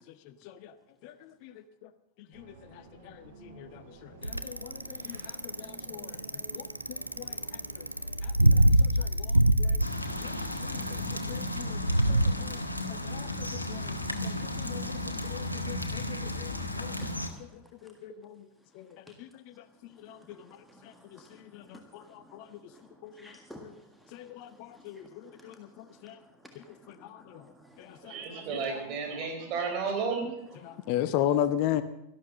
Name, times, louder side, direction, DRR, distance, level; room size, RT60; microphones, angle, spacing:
voice 1, 0.2-0.7 1.0-1.9 2.3-7.9 8.2-9.8 10.2-11.8 12.1-12.6 12.9-14.0 14.2-16.9 17.4-18.4 18.7-22.6 23.0-23.7 24.1-26.2 26.6-27.5 27.8-28.1 30.9-31.8, left 11 dB, 45° left, 13 dB, 0.8 m, -38 dB
sound 1, 2.3-8.8, right 2 dB, 65° right, 4.4 m, -51 dB
Bicycle, 4.2-12.3, right 1 dB, 85° right, 0.5 m, -24 dB
sound 2, 9.8-17.3, left 1 dB, 85° left, 1.4 m, -34 dB
voice 2, 16.8-18.2 19.1-19.2 19.9-28.4 30.2-30.3 30.6-30.9, equal, ahead, 2 dB, 1.7 m, -52 dB
voice 3, 27.9-30.2, right 5 dB, 40° right, 2 dB, 4.6 m, -33 dB
13.0 x 12.0 x 7.3 m, 0.85 s
figure-of-eight pair, 90°, 0 cm